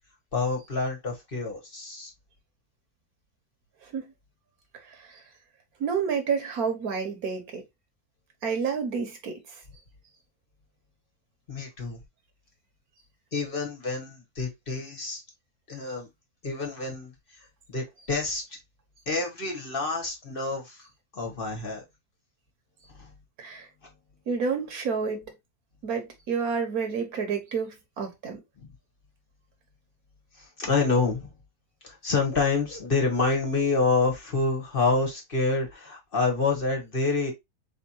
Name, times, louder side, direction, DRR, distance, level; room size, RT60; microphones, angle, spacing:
voice 1, 0.3-2.1 11.5-12.0 13.3-15.2 15.7-16.1 16.4-17.1 17.4-18.4 19.1-20.9 21.1-21.8 22.9-23.1 28.6-28.7 30.3-31.3 31.8-37.3, left 3 dB, 40° left, 1.3 m, -27 dB
voice 2, 5.8-7.6 8.4-9.4 23.4-23.7 24.3-25.3 25.8-28.4, right 5 dB, 85° right, 1.7 m, -29 dB
4.2 x 3.6 x 2.8 m
omnidirectional pair, 1.5 m